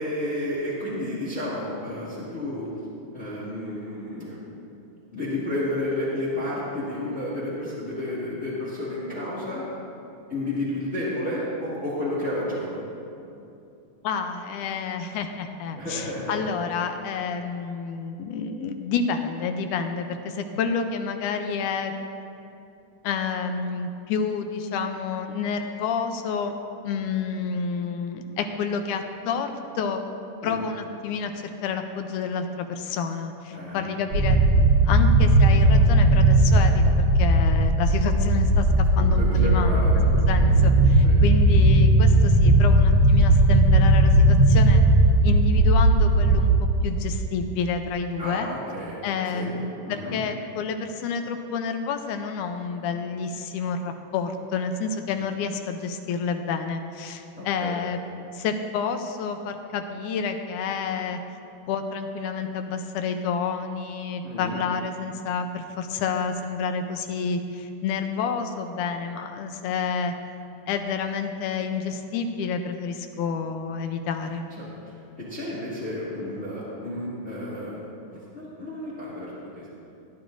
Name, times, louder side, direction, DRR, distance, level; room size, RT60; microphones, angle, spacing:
voice 1, 0.0-2.7 3.1-4.7 5.1-9.6 10.3-12.9 15.8-16.4 30.4-30.7 33.5-33.9 39.0-40.7 41.0-41.2 48.2-49.0 49.3-50.2 55.1-55.2 57.4-57.8 64.2-64.6 74.6-74.7 75.2-77.8 78.3-79.6, left 1 dB, 25° left, -8 dB, 2.0 m, -31 dB
voice 2, 14.0-21.9 23.0-26.5 26.8-30.0 30.4-31.3 31.6-39.9 40.1-44.8 45.2-46.5 46.8-48.5 49.0-58.0 58.3-61.2 61.7-70.1 70.7-74.5, left 5 dB, 80° left, 6 dB, 2.1 m, -29 dB
sound 1, 34.1-46.6, right 1 dB, 55° right, 1.4 m, -17 dB
17.0 x 10.5 x 2.6 m, 2.7 s
omnidirectional pair, 3.7 m